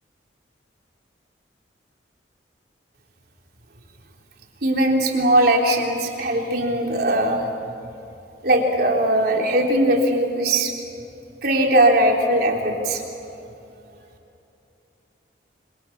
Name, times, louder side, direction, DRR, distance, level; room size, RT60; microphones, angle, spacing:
voice 1, 4.6-7.5 8.4-10.7 11.4-13.0, right 1 dB, 55° right, 0 dB, 3.8 m, -19 dB
27.0 x 26.0 x 7.4 m, 2.8 s
head